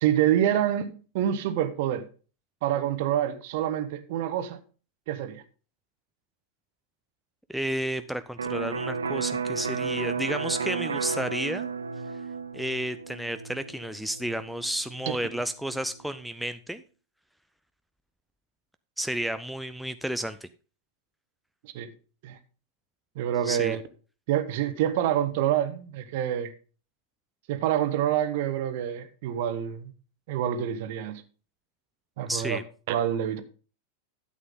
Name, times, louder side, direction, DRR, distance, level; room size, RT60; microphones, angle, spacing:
voice 1, 0.0-2.1 2.6-4.6 5.1-5.4 21.6-21.9 22.2-22.4 23.1-23.8 24.3-26.5 27.5-29.9 30.3-31.2 32.2-32.6 32.9-33.4, right 10 dB, 50° right, 1.2 m, -27 dB
voice 2, 7.5-11.7 12.5-16.8 19.0-20.5 23.4-23.8 32.3-32.6, right 1 dB, ahead, 0.5 m, -32 dB
Electric guitar, 8.4-16.0, right 5 dB, 70° right, 0.7 m, -33 dB
12.5 x 8.1 x 3.7 m
figure-of-eight pair, 90°, 0 cm